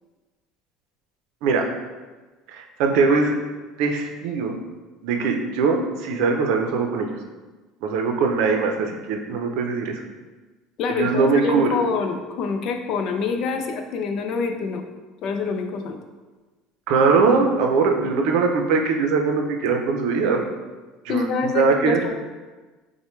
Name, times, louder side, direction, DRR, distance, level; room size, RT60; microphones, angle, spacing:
voice 1, 2.5-3.3 3.8-4.5 5.0-7.1 7.8-10.0 10.9-11.8 16.9-20.5 21.0-22.0, right 4 dB, 65° right, 3 dB, 0.6 m, -21 dB
voice 2, 10.8-14.8 15.2-16.0 21.1-22.1, left 4 dB, 45° left, 5 dB, 0.4 m, -26 dB
6.4 x 2.2 x 3.1 m, 1.3 s
cardioid pair, 155°, 0 cm